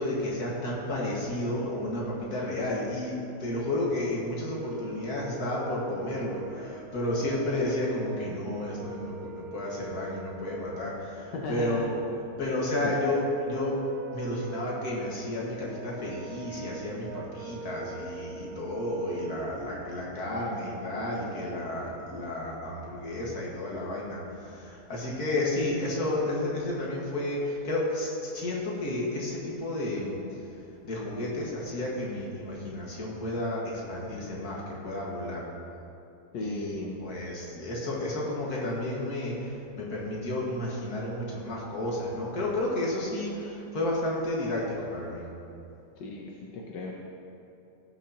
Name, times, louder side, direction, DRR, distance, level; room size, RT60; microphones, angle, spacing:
voice 1, 0.0-3.1 3.4-12.1 12.4-13.8 14.1-30.2 30.8-35.5 36.4-45.2, left 1 dB, 60° left, -4 dB, 2.2 m, -32 dB
Brass instrument, 4.5-10.9 13.1-19.6, right 6 dB, 75° right, 1.0 m, -43 dB
voice 2, 11.3-11.8 12.8-12.9 36.3-37.0 46.0-47.1, left 2 dB, 85° left, -2 dB, 1.5 m, -35 dB
17.5 x 6.1 x 2.9 m, 2.9 s
omnidirectional pair, 1.9 m